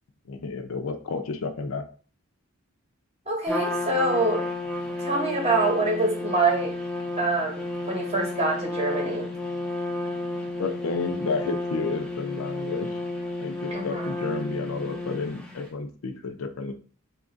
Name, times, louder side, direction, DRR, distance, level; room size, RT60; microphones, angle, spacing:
voice 1, 0.3-1.9 10.6-13.0 13.4-16.7, left 4 dB, 75° left, 7 dB, 0.5 m, -31 dB
voice 2, 3.3-4.4 5.0-6.7 7.2-9.3 13.7-14.1, right 2 dB, 30° right, 0 dB, 0.9 m, -25 dB
Trumpet, 3.5-15.6, left 2 dB, 5° left, 0.4 m, -32 dB
2.8 x 2.6 x 3.6 m, 0.39 s
head